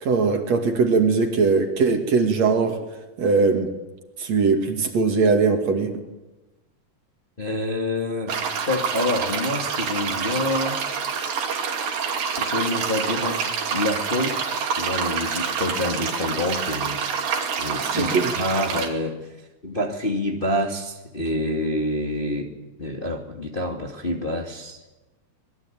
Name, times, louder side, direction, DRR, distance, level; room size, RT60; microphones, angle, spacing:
voice 1, 0.0-2.8 3.2-3.7 4.2-6.0 17.9-18.3, right 4 dB, 55° right, 5 dB, 3.5 m, -20 dB
voice 2, 7.4-8.4 8.7-10.8 12.4-13.4 13.7-19.4 19.6-22.5 22.8-24.8, left 1 dB, 20° left, 2 dB, 2.0 m, -27 dB
sound 1, 8.3-18.9, right 6 dB, 85° right, 4.3 m, -27 dB
25.5 x 21.5 x 9.2 m, 1.1 s
omnidirectional pair, 3.9 m